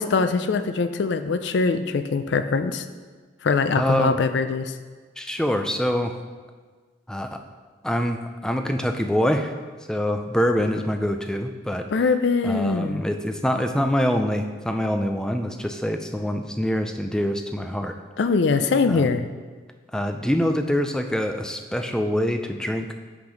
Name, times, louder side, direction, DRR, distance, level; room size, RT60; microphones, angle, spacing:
voice 1, 0.0-2.8 3.4-4.7 11.9-13.0 18.2-19.3, left 4 dB, 70° left, 10 dB, 0.4 m, -22 dB
voice 2, 3.8-4.2 5.2-6.2 7.1-7.4 7.8-9.5 9.9-11.8 12.4-18.0 18.9-19.2 19.9-22.9, equal, 5° left, 6 dB, 0.4 m, -25 dB
6.0 x 5.9 x 5.1 m, 1.4 s
head